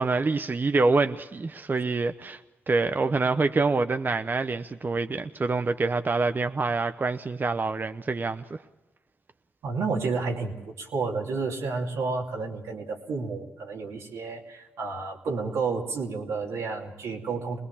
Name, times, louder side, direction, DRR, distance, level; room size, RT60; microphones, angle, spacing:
voice 1, 0.0-2.4 2.7-8.6, right 3 dB, 40° right, 0.8 m, -26 dB
voice 2, 9.6-17.6, right 4 dB, 90° right, 2.7 m, -31 dB
22.5 x 20.0 x 7.1 m
supercardioid pair, 50°, 5 cm